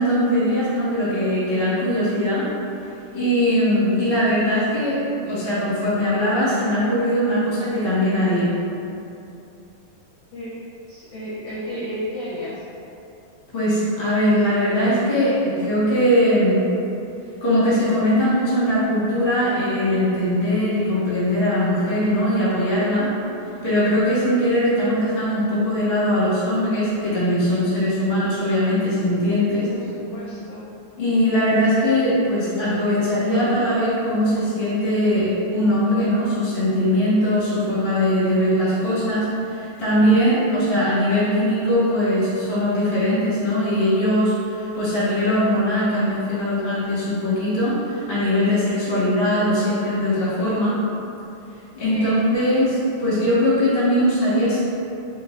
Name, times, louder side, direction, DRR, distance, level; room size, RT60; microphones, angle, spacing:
voice 1, 0.0-2.4 3.1-8.5 13.5-16.7 17.4-23.1 23.6-29.7 31.0-50.8 51.7-54.6, equal, 40° left, -10 dB, 0.8 m, -20 dB
voice 2, 10.9-12.6 29.7-30.6 48.8-49.0 51.9-52.1, equal, 80° left, -8 dB, 1.5 m, -33 dB
5.0 x 2.7 x 3.2 m, 2.7 s
omnidirectional pair, 3.7 m